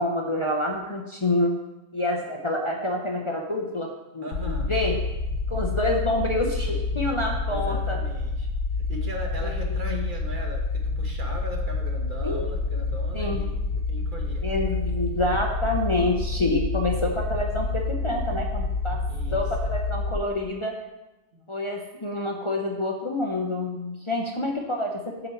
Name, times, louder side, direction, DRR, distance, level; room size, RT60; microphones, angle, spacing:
voice 1, 0.0-1.5 1.9-4.9 5.5-8.0 9.4-9.6 9.9-10.0 12.2-12.4 13.1-13.4 14.4-19.0 19.3-20.8 21.5-25.3, left 1 dB, 30° left, 0 dB, 0.7 m, -27 dB
voice 2, 4.2-4.8 6.5-6.8 7.5-8.5 8.9-13.6 13.9-14.5 19.1-19.7 21.3-21.5, equal, 50° right, 1 dB, 1.2 m, -38 dB
sound 1, 4.3-20.2, left 3 dB, 75° left, 1.0 m, -28 dB
7.9 x 6.9 x 4.4 m, 1.0 s
omnidirectional pair, 1.1 m